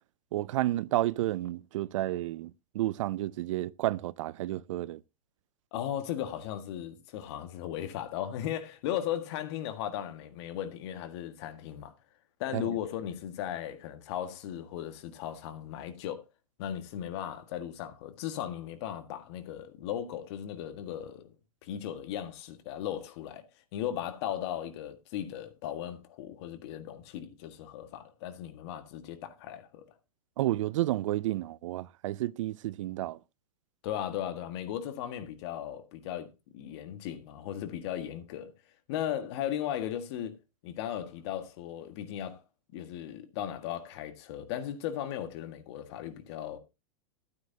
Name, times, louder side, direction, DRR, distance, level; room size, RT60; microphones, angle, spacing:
voice 1, 0.3-5.0 12.5-12.6 30.4-33.2, right 15 dB, 60° right, 0.4 m, -31 dB
voice 2, 5.7-11.9 12.4-16.2 16.6-21.3 21.6-23.4 23.7-29.8 33.8-36.3 36.5-38.5 38.9-40.4 40.6-42.4 42.7-46.6, left 10 dB, 50° left, 1.7 m, -37 dB
11.5 x 9.4 x 2.8 m
hypercardioid pair, 150°, 19 cm